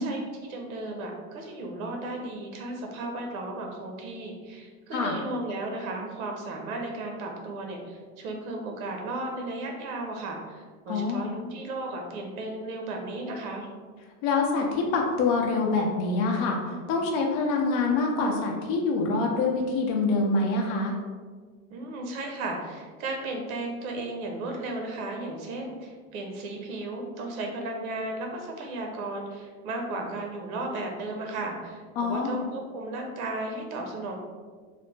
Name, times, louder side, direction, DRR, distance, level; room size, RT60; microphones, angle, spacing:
voice 1, 0.0-13.7 21.7-34.2, right 2 dB, 85° right, 2 dB, 0.7 m, -35 dB
voice 2, 10.9-11.3 14.2-16.6 16.9-20.9 32.0-32.4, left 3 dB, 50° left, 0 dB, 0.6 m, -25 dB
3.2 x 2.0 x 3.1 m, 1.5 s
supercardioid pair, 150°, 42 cm